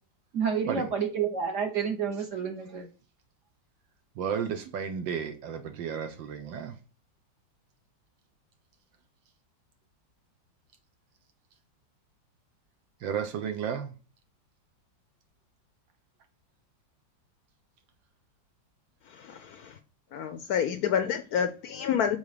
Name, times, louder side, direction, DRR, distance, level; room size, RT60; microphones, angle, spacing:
voice 1, 0.3-2.9, right 6 dB, 50° right, 4 dB, 1.1 m, -29 dB
voice 2, 4.2-6.8 13.0-13.9, right 7 dB, 80° right, 7 dB, 1.5 m, -33 dB
voice 3, 19.1-19.8 20.1-22.2, left 8 dB, 70° left, 9 dB, 0.9 m, -29 dB
7.2 x 4.1 x 4.9 m, 0.36 s
omnidirectional pair, 2.0 m